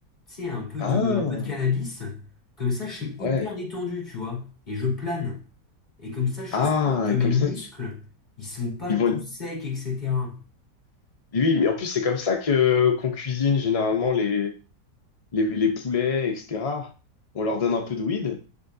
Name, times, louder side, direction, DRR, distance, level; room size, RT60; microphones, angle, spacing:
voice 1, 0.3-2.2 2.6-5.4 6.0-8.0 8.4-10.4, left 5 dB, 25° left, 2.9 m, -29 dB
voice 2, 0.8-1.5 3.2-3.4 6.5-7.5 8.9-9.2 11.3-14.5 15.3-16.9 17.3-18.4, left 5 dB, 60° left, 0.3 m, -24 dB
10.5 x 3.7 x 2.7 m
omnidirectional pair, 1.8 m